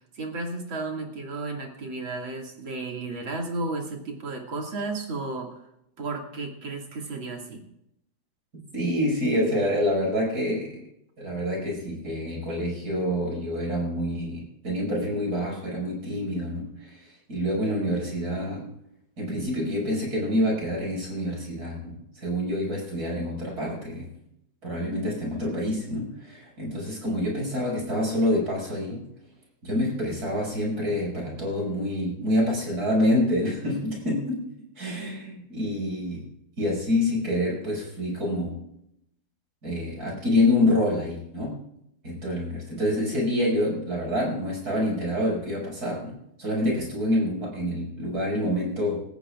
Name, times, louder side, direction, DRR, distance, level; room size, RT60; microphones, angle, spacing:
voice 1, 0.2-5.5 6.0-7.6, right 3 dB, 70° right, 1 dB, 3.1 m, -33 dB
voice 2, 8.7-10.8 11.2-18.7 19.2-24.1 24.6-29.0 29.6-34.5 34.8-36.3 36.6-38.5 39.6-41.6 42.0-46.1 46.4-49.0, left 1 dB, 45° right, -2 dB, 6.4 m, -27 dB
28.5 x 14.0 x 2.5 m, 0.79 s
omnidirectional pair, 2.3 m